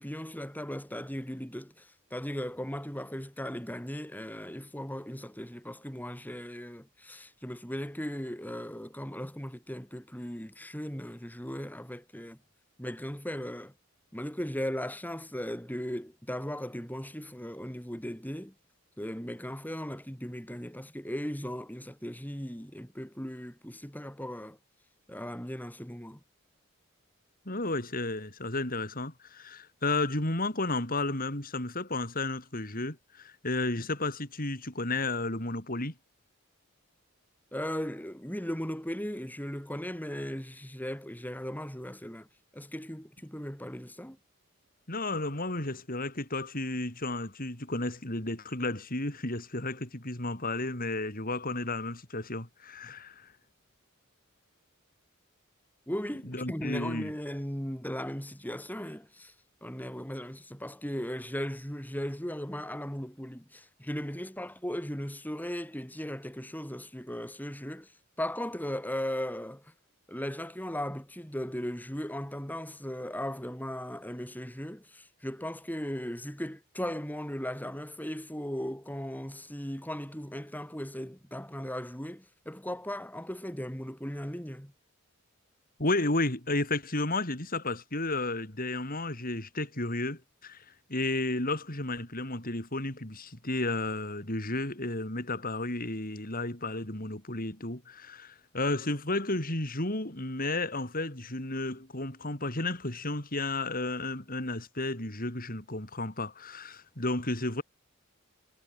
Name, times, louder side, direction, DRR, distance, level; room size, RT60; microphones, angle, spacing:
voice 1, 0.0-12.4 12.8-13.7 14.1-18.5 19.0-24.6 25.1-26.2 37.5-42.3 42.5-44.2 55.9-59.3 59.6-67.9 68.2-69.7 70.1-84.7, equal, 10° left, 7.4 m, -37 dB
voice 2, 27.5-35.9 44.9-53.3 56.3-57.1 85.8-90.6 90.9-107.6, left 2 dB, 40° left, 5.2 m, -32 dB
head